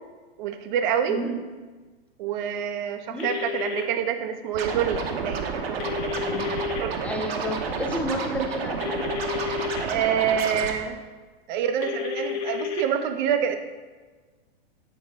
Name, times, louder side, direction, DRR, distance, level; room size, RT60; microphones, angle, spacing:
voice 1, 0.4-1.2 2.2-6.0 6.5-7.0 8.3-8.5 9.8-11.0 11.5-13.6, right 8 dB, 45° right, 8 dB, 0.8 m, -27 dB
voice 2, 1.1-1.4 3.1-3.3 6.3-6.5 7.0-8.8, equal, 5° left, 2 dB, 0.4 m, -31 dB
sound 1, 3.2-3.8 5.8-6.8 8.8-9.8 11.8-12.8, left 7 dB, 45° left, 1.2 m, -31 dB
Scratching (performance technique), 4.5-10.7, right 5 dB, 70° right, 1.1 m, -30 dB
8.3 x 3.8 x 5.0 m, 1.3 s
hypercardioid pair, 130°, 32 cm